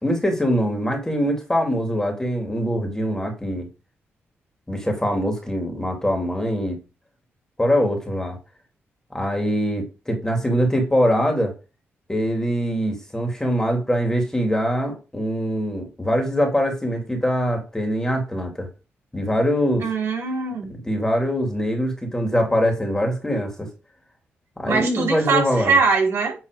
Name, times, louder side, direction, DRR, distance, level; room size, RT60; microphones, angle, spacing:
voice 1, 0.0-3.7 4.7-6.8 7.6-8.4 9.1-11.5 12.1-18.7 19.1-19.9 20.8-23.7 24.6-25.8, equal, 10° left, 2.7 m, -23 dB
voice 2, 19.8-20.7 24.7-26.3, right 4 dB, 70° right, 5.3 m, -22 dB
9.5 x 4.0 x 5.1 m
cardioid pair, 95°, 4 cm